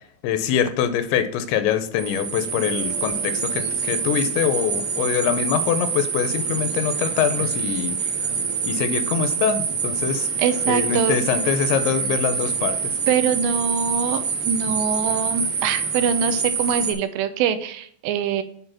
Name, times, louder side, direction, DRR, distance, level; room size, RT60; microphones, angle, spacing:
voice 1, 0.2-8.0 8.6-10.3 10.7-13.0, left 8 dB, 85° left, 10 dB, 2.8 m, -24 dB
sound 1, 2.0-16.9, right 5 dB, 60° right, 2.7 m, -26 dB
voice 2, 10.4-11.2 13.1-18.4, right 8 dB, 85° right, 10 dB, 2.7 m, -23 dB
8.9 x 3.6 x 5.9 m, 0.62 s
omnidirectional pair, 5.3 m